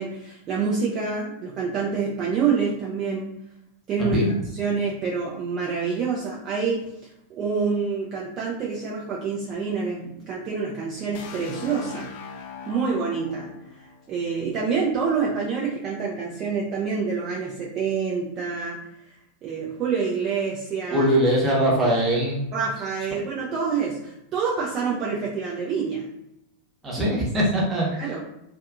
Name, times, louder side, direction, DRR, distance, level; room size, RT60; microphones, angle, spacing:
voice 1, 0.0-3.3 3.9-4.2 4.5-6.9 7.3-12.1 12.7-13.5 13.8-18.8 19.1-19.2 19.4-21.1 22.5-26.1 28.0-28.2, right 5 dB, 30° right, -4 dB, 0.5 m, -27 dB
voice 2, 4.0-4.4 20.9-22.4 26.8-28.2, right 1 dB, 15° right, -4 dB, 0.9 m, -22 dB
sound 1, 11.1-15.0, left 6 dB, 50° left, 0.4 m, -40 dB
2.6 x 2.4 x 2.3 m, 0.84 s
figure-of-eight pair, 90°, 0 cm